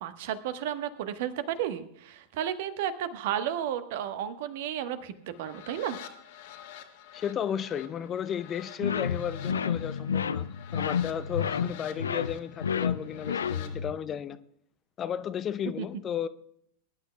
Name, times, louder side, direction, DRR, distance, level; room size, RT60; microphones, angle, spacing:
voice 1, 0.0-6.0 15.8-15.9, right 10 dB, 50° right, 1.1 m, -33 dB
sound 1, 5.2-13.7, left 10 dB, 50° left, 1.6 m, -48 dB
voice 2, 7.1-14.4 15.0-16.3, left 9 dB, 25° left, 0.6 m, -34 dB
sound 2, 8.8-13.9, left 7 dB, 70° left, 0.4 m, -30 dB
23.0 x 11.5 x 2.3 m
figure-of-eight pair, 90°, 0 cm